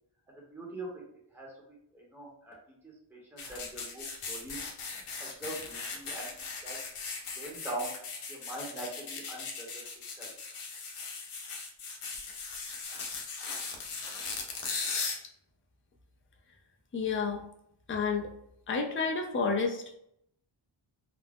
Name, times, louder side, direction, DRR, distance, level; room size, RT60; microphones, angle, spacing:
voice 1, 0.5-0.9 1.3-1.5 1.9-2.6 3.1-4.6 5.2-6.9 7.3-7.9 8.3-10.3, right 2 dB, 5° right, -3 dB, 0.8 m, -42 dB
sound 1, 3.4-15.2, left 4 dB, 90° left, 0.6 m, -38 dB
voice 2, 16.9-17.4 17.9-18.3 18.7-20.0, left 5 dB, 25° left, 2 dB, 0.4 m, -30 dB
2.4 x 2.0 x 3.3 m, 0.72 s
wide cardioid pair, 65°, 50 cm